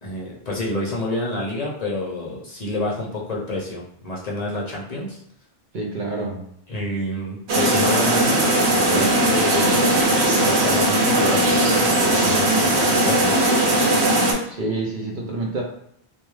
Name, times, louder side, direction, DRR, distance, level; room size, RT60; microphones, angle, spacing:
voice 1, 0.0-5.2 6.7-8.5 8.8-10.0 10.4-13.4, left 1 dB, 45° left, -5 dB, 0.6 m, -28 dB
voice 2, 5.7-6.4 14.5-15.6, right 2 dB, 55° right, -1 dB, 0.6 m, -27 dB
sound 1, 7.5-14.3, right 1 dB, 80° right, 0.9 m, -18 dB
2.4 x 2.3 x 3.1 m, 0.72 s
omnidirectional pair, 1.1 m